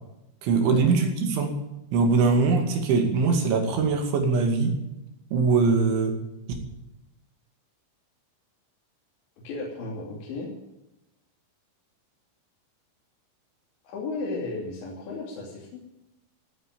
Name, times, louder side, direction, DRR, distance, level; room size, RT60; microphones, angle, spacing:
voice 1, 0.4-1.5 1.9-4.8 5.3-6.2, right 4 dB, 65° right, 4 dB, 4.5 m, -22 dB
voice 2, 9.4-10.5 13.8-15.8, left 3 dB, 65° left, -4 dB, 5.0 m, -34 dB
16.0 x 9.9 x 9.2 m, 0.94 s
omnidirectional pair, 5.9 m